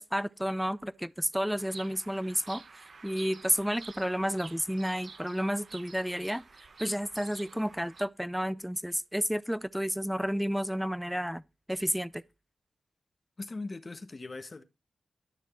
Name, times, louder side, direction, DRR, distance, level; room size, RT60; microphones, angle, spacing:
voice 1, 0.0-6.4 6.8-11.4 11.7-12.2, equal, 5° right, 0.7 m, -31 dB
Bird vocalization bird call bird song, 1.6-8.0, right 4 dB, 65° right, 1.2 m, -50 dB
voice 2, 13.4-14.6, left 3 dB, 45° left, 1.5 m, -40 dB
13.0 x 6.6 x 4.5 m
cardioid pair, 45°, 0 cm